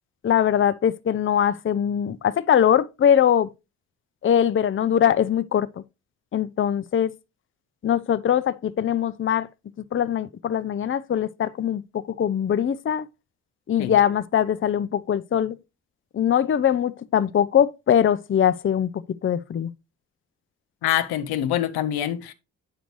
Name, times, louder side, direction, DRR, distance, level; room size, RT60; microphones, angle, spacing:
voice 1, 0.2-3.5 4.2-5.7 6.3-7.1 7.8-9.5 9.9-11.8 12.2-13.0 13.7-15.6 16.1-18.9 19.2-19.7, left 9 dB, 35° left, 0.5 m, -21 dB
voice 2, 20.8-22.3, left 11 dB, 80° left, 0.7 m, -25 dB
9.3 x 5.1 x 3.1 m
supercardioid pair, 45°, 37 cm